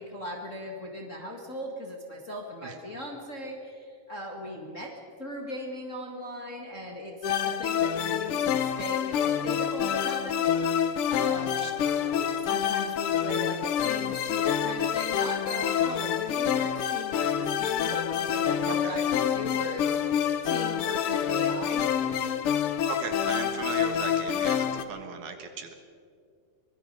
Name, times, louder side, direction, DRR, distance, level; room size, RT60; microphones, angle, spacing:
voice 1, 0.0-4.9 5.2-7.1 7.4-10.5 11.1-11.7 12.4-21.9, left 1 dB, 30° left, 0 dB, 1.6 m, -38 dB
sound 1, 7.2-24.8, left 9 dB, 85° left, 1.2 m, -27 dB
voice 2, 12.0-12.5 18.7-19.0 22.9-25.7, right 6 dB, 65° right, 6 dB, 2.8 m, -37 dB
24.0 x 21.0 x 5.4 m, 2.2 s
omnidirectional pair, 3.8 m